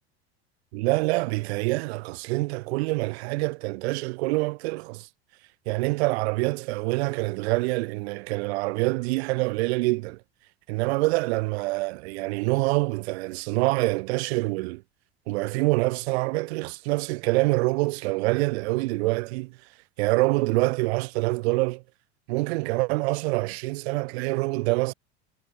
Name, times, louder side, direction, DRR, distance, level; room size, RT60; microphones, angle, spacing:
voice 1, 0.7-5.1 5.7-10.2 10.7-14.8 15.3-19.6 20.0-21.8 22.3-24.9, right 24 dB, 70° right, 0.6 m, -26 dB
hypercardioid pair, 95°, 33 cm